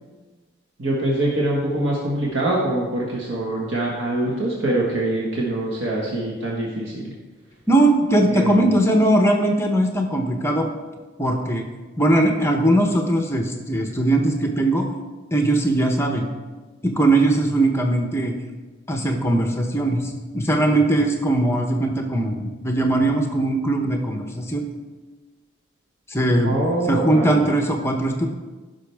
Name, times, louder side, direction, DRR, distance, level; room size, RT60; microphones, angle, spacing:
voice 1, 0.8-7.1 8.3-8.7 26.4-27.4, right 1 dB, 80° right, -4 dB, 1.5 m, -24 dB
voice 2, 7.7-10.7 11.2-11.6 12.0-14.9 15.3-16.2 16.8-18.3 18.9-24.6 26.1-26.6 26.9-28.3, right 1 dB, 15° left, 3 dB, 0.8 m, -20 dB
15.0 x 6.2 x 3.5 m, 1.3 s
head